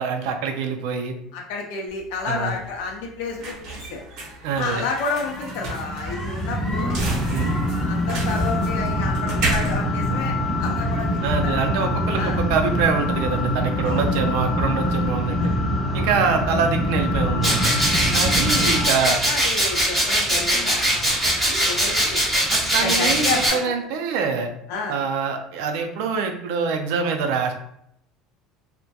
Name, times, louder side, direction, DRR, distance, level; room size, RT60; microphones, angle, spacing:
voice 1, 0.0-1.1 2.3-2.6 4.4-4.9 7.3-7.7 11.2-15.5 15.9-17.7 18.1-19.2 22.5-23.3 23.5-24.5 24.9-27.5, right 5 dB, 70° right, 4 dB, 0.4 m, -25 dB
voice 2, 1.3-4.0 4.5-7.1 7.9-11.5 12.2-12.4 13.8-14.1 15.4-15.6 16.2-16.4 18.0-18.2 18.9-22.2 22.8-23.6 24.7-25.0, left 4 dB, 70° left, 1 dB, 0.4 m, -30 dB
sound 1, 1.9-11.0, right 2 dB, 45° right, 0.7 m, -33 dB
sound 2, 4.8-18.9, left 1 dB, 10° left, 0.7 m, -24 dB
sound 3, 17.4-23.5, right 1 dB, 5° right, 1.0 m, -21 dB
2.7 x 2.1 x 2.2 m, 0.74 s
cardioid pair, 175°, 0 cm